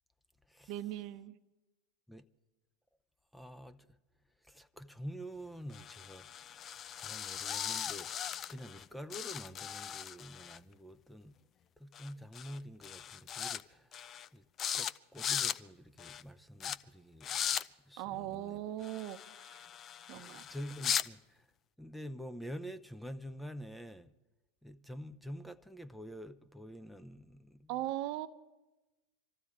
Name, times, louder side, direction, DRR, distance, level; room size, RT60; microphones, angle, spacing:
voice 1, 0.7-1.4 18.0-19.6 20.1-20.4 27.7-28.3, right 14 dB, 55° right, 0.9 m, -39 dB
voice 2, 3.3-3.9 4.5-6.3 7.0-11.3 11.8-13.9 14.3-14.4 14.7-17.4 17.9-18.6 20.1-21.4 21.8-24.1 24.6-27.7, equal, 5° left, 0.8 m, -47 dB
sound 1, 5.7-8.8 9.1-10.6 11.9-12.1 12.3-12.6 12.8-13.6 13.9-14.3 14.6-14.9 15.2-15.6 16.0-16.2 16.6-16.8 17.2-17.6 18.8-21.1, left 9 dB, 35° left, 0.5 m, -38 dB
25.5 x 14.5 x 3.7 m
hypercardioid pair, 90°, 0 cm